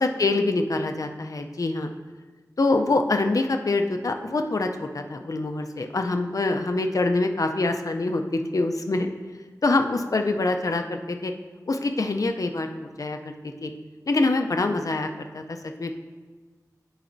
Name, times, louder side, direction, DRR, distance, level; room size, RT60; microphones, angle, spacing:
voice 1, 0.0-1.9 2.6-9.1 9.6-11.3 11.7-13.3 13.6-13.7 14.1-16.0, left 2 dB, 60° left, 5 dB, 0.5 m, -25 dB
11.0 x 4.0 x 2.6 m, 1.3 s
wide cardioid pair, 45°, 7 cm